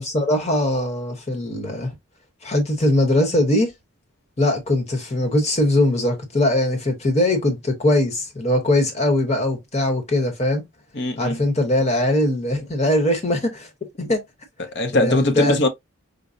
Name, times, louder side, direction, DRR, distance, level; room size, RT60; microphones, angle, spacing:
voice 1, 0.0-1.9 2.4-3.7 4.4-10.6 11.2-13.7 14.0-14.2 14.9-15.6, left 1 dB, 30° left, 0.9 m, -21 dB
voice 2, 10.9-11.4 14.6-15.7, left 2 dB, 55° left, 0.7 m, -20 dB
5.2 x 2.0 x 2.4 m
head